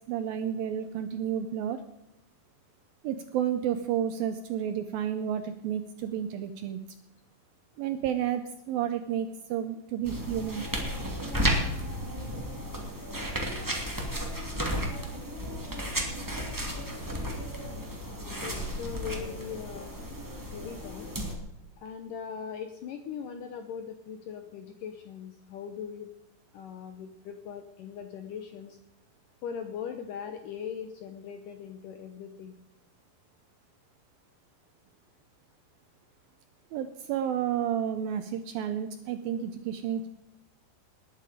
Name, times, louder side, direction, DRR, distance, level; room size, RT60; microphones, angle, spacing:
voice 1, 0.1-1.8 3.0-6.8 7.8-10.7 36.7-40.1, right 9 dB, 80° right, 9 dB, 2.1 m, -31 dB
sound 1, 10.0-21.3, equal, 10° right, 1.1 m, -33 dB
voice 2, 18.4-19.9 20.5-21.1 21.8-26.1 26.5-28.8 29.4-32.6, left 7 dB, 75° left, 7 dB, 2.0 m, -40 dB
20.0 x 10.5 x 5.0 m, 0.90 s
omnidirectional pair, 4.9 m